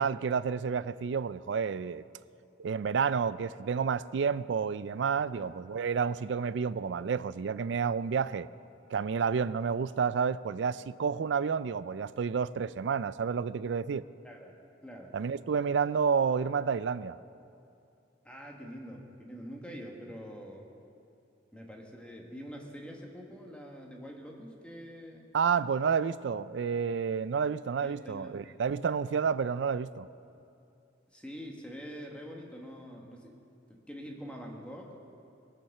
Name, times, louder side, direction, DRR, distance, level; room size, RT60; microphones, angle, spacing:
voice 1, 0.0-2.0 2.6-8.5 8.9-14.0 15.1-17.2 25.3-30.1, right 6 dB, 70° right, 17 dB, 0.4 m, -30 dB
voice 2, 14.2-14.5 14.8-15.1 18.2-20.7 21.5-25.2 27.8-28.6 31.1-33.4 33.7-35.0, equal, 5° left, 0 dB, 1.5 m, -45 dB
21.5 x 8.7 x 6.6 m, 2.7 s
head